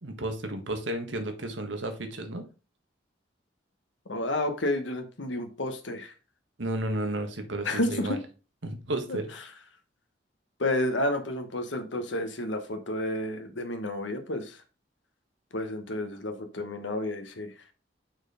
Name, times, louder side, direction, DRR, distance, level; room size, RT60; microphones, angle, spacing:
voice 1, 0.0-2.4 6.6-8.2 8.6-9.2, right 1 dB, 80° right, 6 dB, 1.6 m, -32 dB
voice 2, 4.1-6.1 7.6-8.1 10.6-14.6 15.5-17.5, left 1 dB, 80° left, 6 dB, 1.3 m, -30 dB
6.2 x 4.5 x 5.0 m, 0.32 s
head